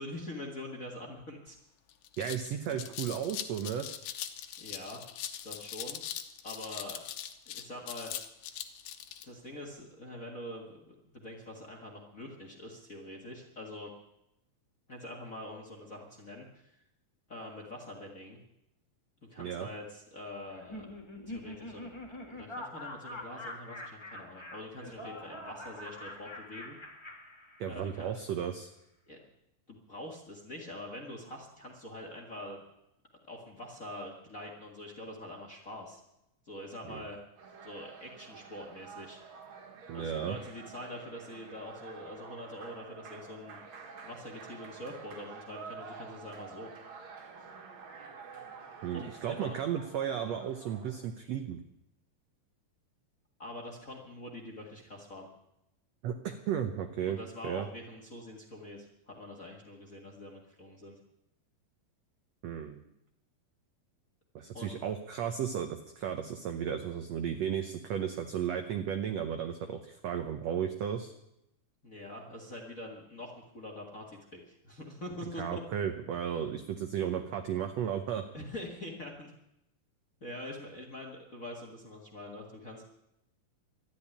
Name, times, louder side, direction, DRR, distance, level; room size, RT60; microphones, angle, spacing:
voice 1, 0.0-1.6 2.6-2.8 4.6-5.0 5.4-6.0 6.4-7.0 7.4-8.1 9.2-13.9 14.9-16.7 17.3-18.4 19.3-20.9 21.3-22.0 22.3-26.8 27.7-28.2 29.1-29.2 29.7-32.6 33.3-36.0 36.4-37.2 37.6-39.2 39.9-43.6 44.0-46.7 48.9-49.6 50.2-50.3 53.4-55.3 57.0-60.9 64.5-64.9 71.8-75.6 78.3-79.3 80.2-82.8, left 1 dB, 35° left, 1 dB, 1.4 m, -44 dB
sound 1, 1.5-1.6 1.9-9.3, left 11 dB, 80° left, 2.6 m, -41 dB
voice 2, 2.2-3.9 19.4-19.7 27.6-28.7 36.9-37.0 39.9-40.4 48.8-51.6 56.0-57.2 57.4-57.7 62.4-62.8 64.3-71.1 75.4-78.2, right 9 dB, 75° right, 6 dB, 1.5 m, -34 dB
Laughter, 20.5-28.0, left 1 dB, 15° left, 0.8 m, -45 dB
sound 2, 37.4-51.1, right 5 dB, 55° right, 2.7 m, -49 dB
13.0 x 10.0 x 9.9 m, 0.85 s
omnidirectional pair, 4.1 m